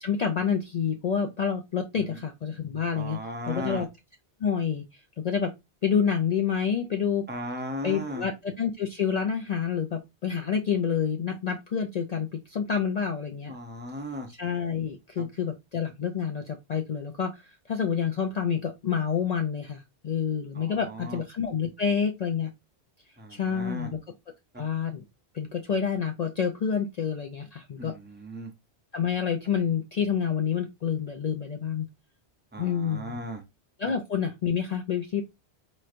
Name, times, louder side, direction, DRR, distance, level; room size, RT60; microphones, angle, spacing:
voice 1, 0.0-3.2 3.5-3.9 4.4-4.8 5.2-5.5 5.8-7.3 7.8-13.5 14.4-17.4 17.7-22.5 23.3-24.0 24.6-25.0 25.3-27.9 28.9-31.9 32.6-33.2 33.8-35.2, left 7 dB, 55° left, 0.4 m, -28 dB
voice 2, 2.9-3.9 7.3-8.3 13.5-14.3 15.2-15.3 20.5-21.2 23.2-23.9 24.5-24.6 27.8-28.5 32.5-33.4, equal, 10° right, 0.5 m, -37 dB
4.3 x 3.1 x 2.4 m
omnidirectional pair, 1.1 m